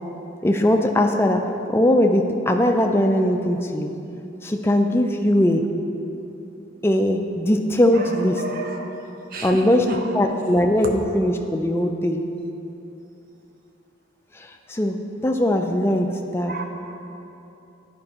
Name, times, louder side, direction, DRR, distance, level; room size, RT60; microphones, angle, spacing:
voice 1, 0.4-1.4 1.7-3.9 4.4-5.6 6.8-8.4 9.4-9.8 10.1-12.2 14.3-15.0 15.2-16.5, left 1 dB, 10° left, 3 dB, 0.3 m, -20 dB
voice 2, 7.9-9.0 9.3-10.2 16.5-16.7, right 2 dB, 45° right, 3 dB, 0.6 m, -31 dB
10.5 x 5.1 x 2.9 m, 2.9 s
head